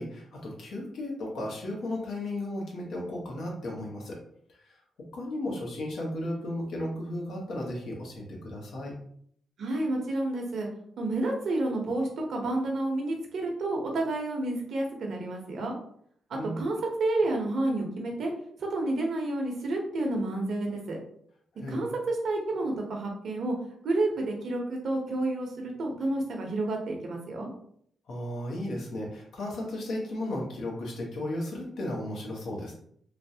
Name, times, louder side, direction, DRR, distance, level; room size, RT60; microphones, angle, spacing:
voice 1, 0.0-4.2 4.6-4.8 5.1-8.9 16.3-16.6 21.6-21.8 28.1-32.7, left 1 dB, 75° left, -2 dB, 0.9 m, -35 dB
voice 2, 9.6-10.7 11.0-15.8 16.3-18.3 18.6-21.0 21.7-23.5 23.8-27.5, right 2 dB, 70° right, 1 dB, 0.7 m, -30 dB
3.1 x 2.0 x 2.7 m, 0.66 s
cardioid pair, 90°, 0 cm